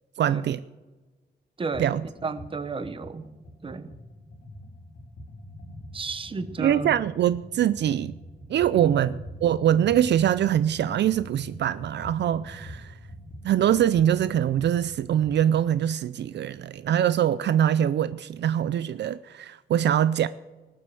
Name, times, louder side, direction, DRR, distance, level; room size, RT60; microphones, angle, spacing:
voice 1, 0.2-0.6 1.8-2.0 6.6-8.2 8.5-12.9 13.4-20.3, right 10 dB, 70° right, 15 dB, 0.4 m, -23 dB
voice 2, 1.6-3.3 3.6-3.9 5.9-6.9 8.7-8.9, right 4 dB, 30° right, 12 dB, 0.9 m, -33 dB
sound 1, 1.7-1.9 2.2-15.5, left 1 dB, 85° left, 3.0 m, -44 dB
19.0 x 7.8 x 7.7 m, 1.2 s
wide cardioid pair, 145°, 19 cm